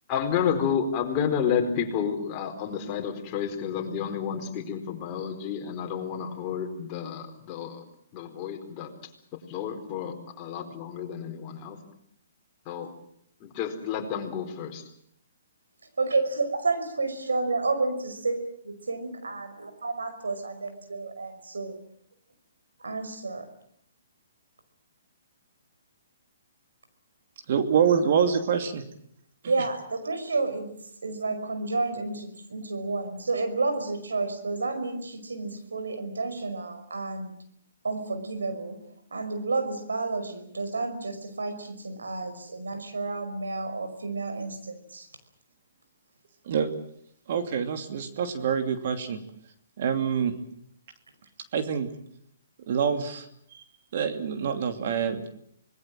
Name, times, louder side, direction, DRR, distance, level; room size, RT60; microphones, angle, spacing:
voice 1, 0.1-7.8 8.1-8.9 9.5-11.8 12.7-13.0 13.4-14.8, left 7 dB, 30° left, 3 dB, 4.5 m, -30 dB
voice 2, 16.0-18.4 18.6-21.8 22.8-23.5 29.5-30.7 31.0-37.3 37.8-38.8 39.1-45.1, right 3 dB, 90° right, 8 dB, 5.5 m, -30 dB
voice 3, 27.5-28.8 46.5-46.7 47.3-49.2 49.8-50.3 51.5-51.9 52.7-53.3 53.5-53.6 53.9-55.3, right 7 dB, 55° right, 7 dB, 2.8 m, -26 dB
26.0 x 20.5 x 7.7 m, 0.68 s
hypercardioid pair, 140°, 0 cm